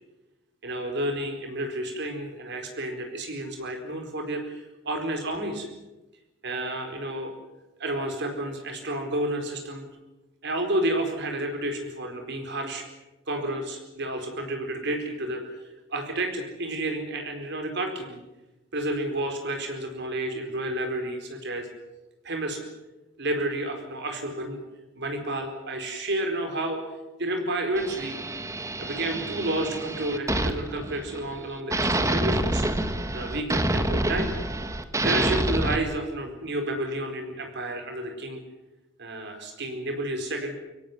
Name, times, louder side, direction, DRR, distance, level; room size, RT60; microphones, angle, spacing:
voice 1, 0.6-5.7 6.4-7.3 7.8-9.9 10.4-12.8 13.3-18.2 18.7-21.7 22.2-22.6 23.2-24.6 25.0-26.8 27.2-28.2 28.8-32.7 33.1-34.3 35.0-38.4 39.0-40.6, right 1 dB, 60° right, 4 dB, 4.5 m, -30 dB
sound 1, 27.8-31.4 31.7-35.8, right 1 dB, 15° right, 1.6 m, -27 dB
24.5 x 17.0 x 9.7 m, 1.0 s
head